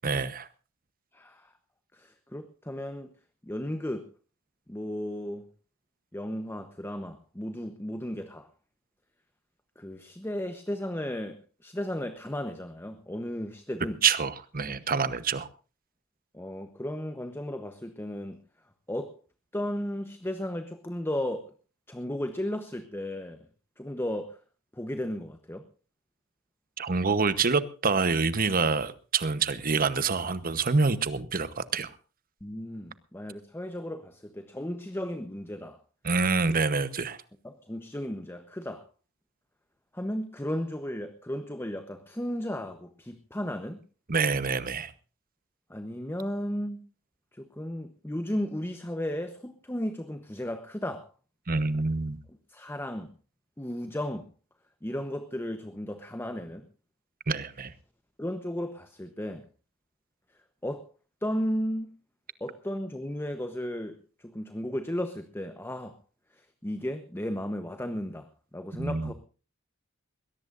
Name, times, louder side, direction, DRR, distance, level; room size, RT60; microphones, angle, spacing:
voice 1, 0.0-0.5 14.0-15.5 26.8-31.9 36.0-37.2 44.1-44.9 51.5-52.2 57.3-57.7 68.8-69.1, right 4 dB, 45° right, 14 dB, 1.0 m, -26 dB
voice 2, 1.1-1.5 1.9-3.1 3.4-4.1 4.7-5.5 6.1-8.5 9.8-14.0 16.3-18.4 18.9-19.2 19.5-21.5 21.9-23.5 23.8-24.4 24.7-25.7 32.4-35.8 36.4-36.6 37.4-38.9 39.9-43.8 45.7-46.8 47.3-51.1 52.5-53.1 53.6-54.3 54.8-56.7 58.2-59.5 60.6-60.9 61.2-61.9 62.4-66.0 66.3-69.1, left 1 dB, 10° left, 9 dB, 0.9 m, -34 dB
21.5 x 17.5 x 2.6 m, 0.36 s
head